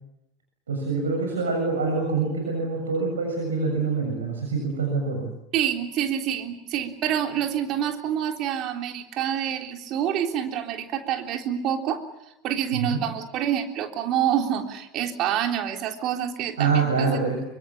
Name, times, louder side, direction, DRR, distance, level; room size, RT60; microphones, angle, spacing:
voice 1, 0.7-5.3 12.7-13.0 16.6-17.4, right 4 dB, 75° right, 2 dB, 6.9 m, -25 dB
voice 2, 5.5-12.0 12.4-17.2, right 9 dB, 45° right, 4 dB, 3.6 m, -27 dB
26.0 x 24.5 x 7.3 m, 0.87 s
figure-of-eight pair, 80°, 0 cm